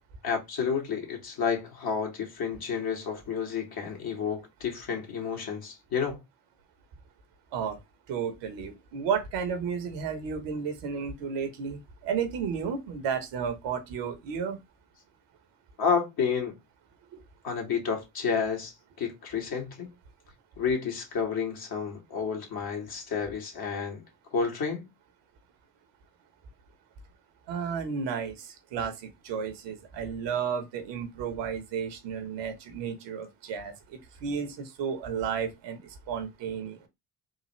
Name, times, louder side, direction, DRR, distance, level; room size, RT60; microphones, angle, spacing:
voice 1, 0.2-6.2 15.8-16.6 17.4-18.7 19.0-19.9 20.6-24.0 24.3-24.9, left 6 dB, 55° left, 1.7 m, -30 dB
voice 2, 8.1-14.6 27.5-33.7 34.2-35.8 36.1-36.9, right 6 dB, 70° right, 1.2 m, -32 dB
3.8 x 2.6 x 3.1 m
hypercardioid pair, 55°, 44 cm